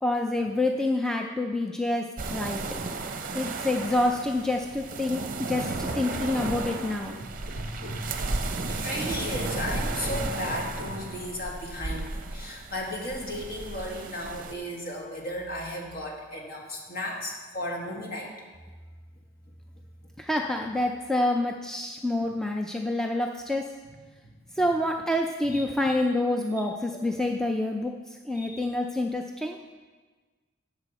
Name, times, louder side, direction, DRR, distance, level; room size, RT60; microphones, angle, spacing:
voice 1, 0.0-2.0 2.3-2.6 3.3-7.2 20.2-23.6 24.6-27.9 28.3-29.6, left 1 dB, 5° left, 2 dB, 0.4 m, -27 dB
sound 1, 2.2-14.5, right 3 dB, 45° right, 0.7 m, -34 dB
voice 2, 7.5-18.3 24.2-24.7 25.5-25.9 26.9-27.0 28.4-28.7, left 1 dB, 50° left, -1 dB, 1.8 m, -35 dB
12.5 x 7.5 x 4.2 m, 1.4 s
head